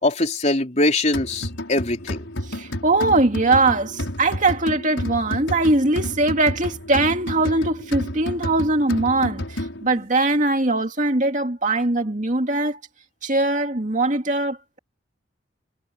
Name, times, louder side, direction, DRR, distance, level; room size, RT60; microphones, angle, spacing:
voice 1, 0.0-2.2, left 2 dB, 40° left, 3.7 m, -22 dB
sound 1, 1.1-10.0, left 1 dB, 90° left, 5.6 m, -31 dB
voice 2, 2.5-12.8 13.2-14.8, right 2 dB, 40° right, 2.4 m, -21 dB
head